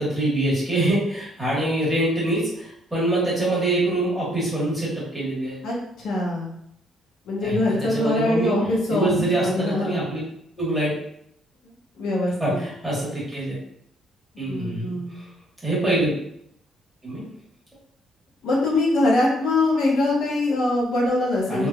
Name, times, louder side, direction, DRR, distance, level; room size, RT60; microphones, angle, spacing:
voice 1, 0.0-5.6 7.4-7.6 7.9-8.5 8.9-10.2 10.6-10.9 12.4-13.6 14.4-15.3 15.6-16.1 17.0-17.2 21.5-21.7, right 1 dB, 5° right, -7 dB, 1.2 m, -24 dB
voice 2, 5.6-6.5 7.3-10.0 11.6-12.6 14.5-15.2 18.4-21.7, left 2 dB, 85° left, -4 dB, 1.0 m, -23 dB
3.2 x 2.7 x 2.3 m, 0.73 s
cardioid pair, 155°, 0 cm